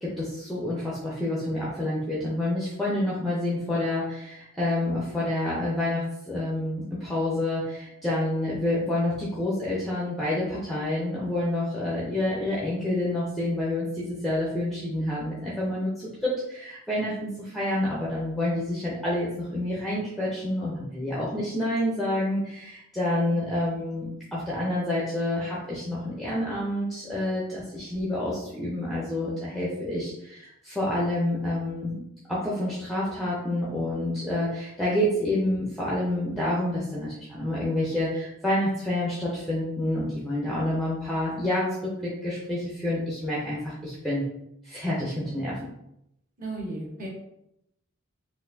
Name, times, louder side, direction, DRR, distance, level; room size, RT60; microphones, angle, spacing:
voice 1, 0.0-32.0 32.3-44.2 44.6-45.6, left 1 dB, ahead, -7 dB, 0.5 m, -28 dB
voice 2, 46.4-47.1, right 2 dB, 40° right, -5 dB, 1.1 m, -36 dB
4.0 x 2.5 x 2.6 m, 0.81 s
head